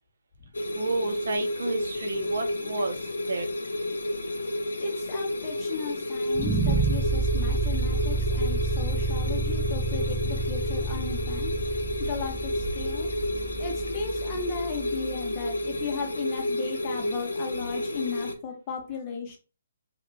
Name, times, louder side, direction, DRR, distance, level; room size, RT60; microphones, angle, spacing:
sound 1, 0.5-18.4, left 1 dB, 85° left, 0.6 m, -31 dB
voice 1, 0.7-3.5, right 3 dB, 70° right, 6 dB, 0.7 m, -32 dB
voice 2, 4.8-11.5 12.0-13.1 13.6-19.4, left 5 dB, 25° left, 1 dB, 0.9 m, -36 dB
sound 2, 6.3-15.4, right 3 dB, 20° right, 0.7 m, -29 dB
2.8 x 2.4 x 3.4 m, 0.34 s
hypercardioid pair, 145°, 0 cm